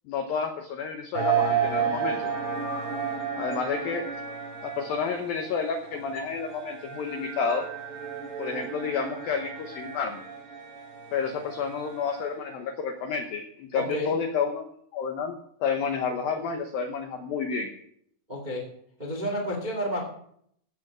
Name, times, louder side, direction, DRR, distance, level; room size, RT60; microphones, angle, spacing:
voice 1, 0.1-2.3 3.4-4.1 4.6-7.6 8.4-10.2 11.1-14.7 14.9-17.7, left 6 dB, 90° left, 5 dB, 2.0 m, -30 dB
sound 1, 1.1-12.6, right 7 dB, 25° right, 4.1 m, -32 dB
voice 2, 13.7-14.1 18.3-18.6 19.0-20.0, equal, 45° right, 1 dB, 0.5 m, -30 dB
15.5 x 7.2 x 6.1 m, 0.68 s
omnidirectional pair, 5.6 m